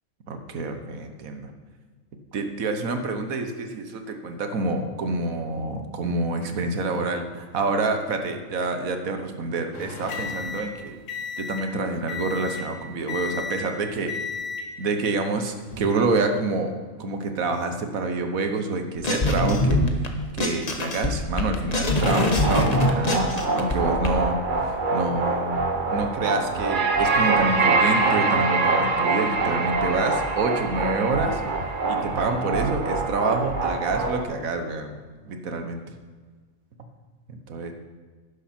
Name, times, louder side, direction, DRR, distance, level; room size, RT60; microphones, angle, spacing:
voice 1, 0.3-1.5 2.3-11.0 11.4-14.1 14.8-16.7 17.0-20.1 20.3-31.4 31.9-34.9 35.3-35.8 37.5-37.7, right 3 dB, 85° right, 6 dB, 1.6 m, -27 dB
sound 1, 9.7-11.7 12.1-12.7 13.1-13.7 14.1-14.7 15.5-15.8, left 5 dB, 65° left, 1.9 m, -33 dB
sound 2, 19.0-20.1 20.4-24.1, left 2 dB, 30° left, 1.1 m, -23 dB
sound 3, 22.0-34.2, right 3 dB, 40° right, 1.0 m, -24 dB
11.5 x 10.5 x 4.4 m, 1.4 s
omnidirectional pair, 1.4 m